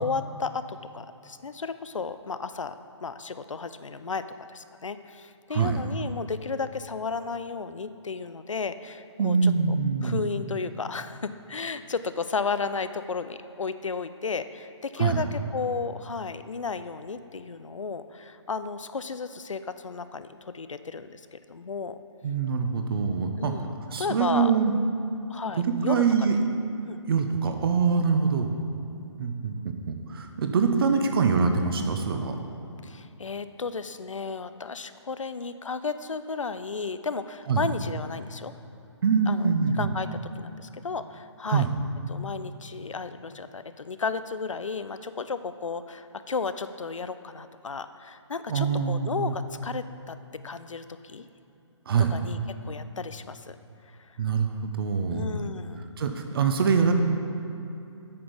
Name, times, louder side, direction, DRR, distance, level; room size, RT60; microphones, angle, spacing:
voice 1, 0.0-9.5 10.0-22.0 23.4-24.5 25.3-26.3 26.9-27.0 32.8-38.5 39.3-40.1 40.4-41.7 42.1-50.2 50.4-51.3 52.1-52.4 52.6-53.6 53.9-54.2 55.1-55.8, left 5 dB, 90° left, 11 dB, 0.5 m, -33 dB
voice 2, 5.5-5.8 9.2-10.2 15.0-15.2 22.2-23.5 23.9-24.7 25.6-26.5 27.1-28.5 29.2-32.3 37.5-37.6 39.0-39.9 41.5-41.7 48.5-49.3 51.9-52.2 54.2-55.3 56.0-56.9, right 5 dB, 50° right, 5 dB, 0.9 m, -24 dB
8.6 x 6.0 x 5.2 m, 2.8 s
figure-of-eight pair, 145°, 16 cm